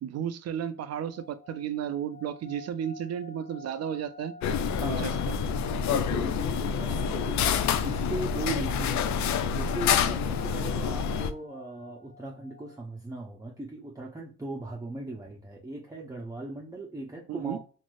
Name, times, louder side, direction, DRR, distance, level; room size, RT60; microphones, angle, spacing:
voice 1, 0.0-4.3 5.0-5.4 17.3-17.6, right 9 dB, 55° right, 12 dB, 0.5 m, -33 dB
sound 1, 0.9-12.8, left 2 dB, 85° left, 1.0 m, -50 dB
sound 2, 4.4-11.3, left 7 dB, 65° left, 0.5 m, -27 dB
voice 2, 4.8-5.1 5.9-9.2 9.5-17.6, right 2 dB, 10° right, -2 dB, 0.7 m, -38 dB
3.2 x 2.6 x 2.5 m, 0.37 s
cardioid pair, 90°, 30 cm